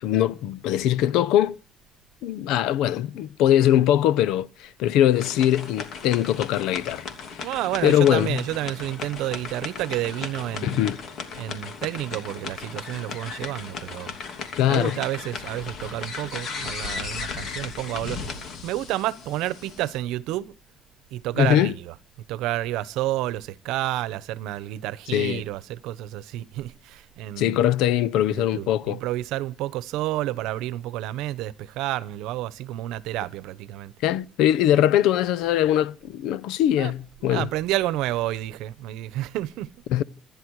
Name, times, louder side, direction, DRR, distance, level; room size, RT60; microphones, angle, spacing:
voice 1, 0.0-1.6 2.2-7.0 7.3-7.5 7.8-8.4 10.6-11.0 14.5-15.0 21.4-21.7 25.1-25.4 27.4-29.0 34.0-37.5 39.9-40.0, left 11 dB, 75° left, 0.8 m, -21 dB
sound 1, 5.2-20.0, left 5 dB, 45° left, 2.8 m, -36 dB
voice 2, 7.4-10.8 11.4-14.1 14.7-18.3 18.6-20.5 21.1-21.9 22.3-27.6 28.2-33.9 36.8-36.9 37.2-39.7, right 15 dB, 80° right, 1.0 m, -30 dB
27.0 x 11.0 x 4.8 m
cardioid pair, 150°, 0 cm